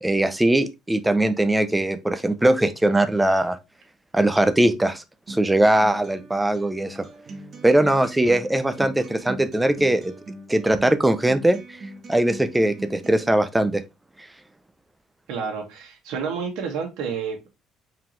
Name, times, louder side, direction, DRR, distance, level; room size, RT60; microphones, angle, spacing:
voice 1, 0.0-3.6 4.1-7.1 7.6-10.1 10.5-11.8 12.1-13.8, right 1 dB, 5° right, 0.4 m, -20 dB
Acoustic guitar, 5.3-13.3, right 2 dB, 30° right, 0.9 m, -40 dB
voice 2, 15.3-17.5, right 6 dB, 75° right, 1.5 m, -30 dB
4.7 x 3.7 x 3.0 m
cardioid pair, 170°, 0 cm